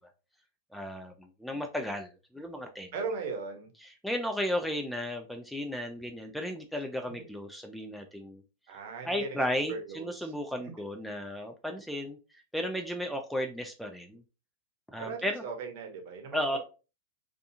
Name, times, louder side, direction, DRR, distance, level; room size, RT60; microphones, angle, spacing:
voice 1, 0.7-2.9 3.8-8.4 8.7-8.8 9.0-14.2 14.9-15.4 16.3-16.6, equal, ahead, 4 dB, 0.3 m, -34 dB
voice 2, 2.9-3.7 7.1-7.2 8.7-10.3 10.6-10.7 15.0-16.5, right 4 dB, 55° right, 4 dB, 0.8 m, -38 dB
2.7 x 2.3 x 2.5 m, 0.32 s
supercardioid pair, 145°, 0 cm